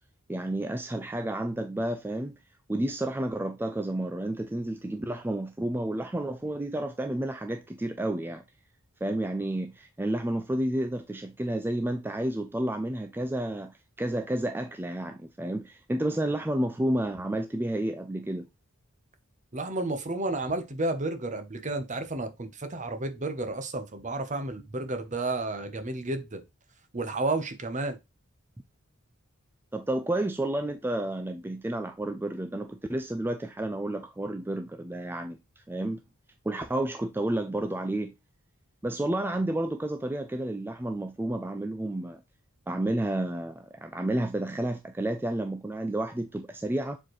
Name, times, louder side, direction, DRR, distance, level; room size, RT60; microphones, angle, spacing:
voice 1, 0.3-2.4 2.7-8.4 9.0-18.5 29.7-36.0 36.5-38.1 38.8-42.2 42.7-47.0, right 1 dB, 10° right, 0.4 m, -31 dB
voice 2, 19.5-26.4 26.9-28.0, right 2 dB, 35° right, 1.0 m, -31 dB
7.3 x 4.5 x 3.1 m
head